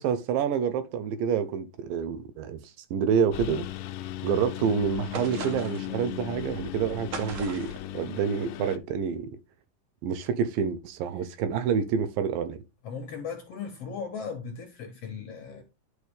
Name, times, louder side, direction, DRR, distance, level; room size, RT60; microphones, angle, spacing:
voice 1, 0.0-2.6 2.9-3.7 4.2-9.3 10.0-12.6, right 7 dB, 85° right, 2.5 m, -28 dB
Engine, 3.3-8.8, left 13 dB, 85° left, 2.3 m, -37 dB
sound 1, 5.1-5.9 7.1-7.8, right 5 dB, 65° right, 1.3 m, -38 dB
voice 2, 12.8-15.6, left 6 dB, 60° left, 1.7 m, -37 dB
11.0 x 4.7 x 3.4 m
omnidirectional pair, 4.0 m